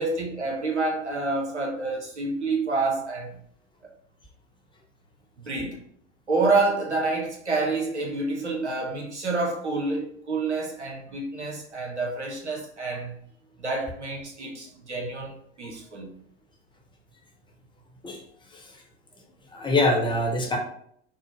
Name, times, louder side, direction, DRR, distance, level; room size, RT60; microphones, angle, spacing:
voice 1, 0.0-3.4 5.4-5.8 6.3-13.2 13.6-16.1, right 3 dB, 90° right, 0 dB, 0.9 m, -28 dB
voice 2, 18.5-18.8 19.5-20.6, left 2 dB, 15° left, 0 dB, 0.8 m, -24 dB
4.5 x 2.0 x 3.1 m, 0.66 s
figure-of-eight pair, 80°, 34 cm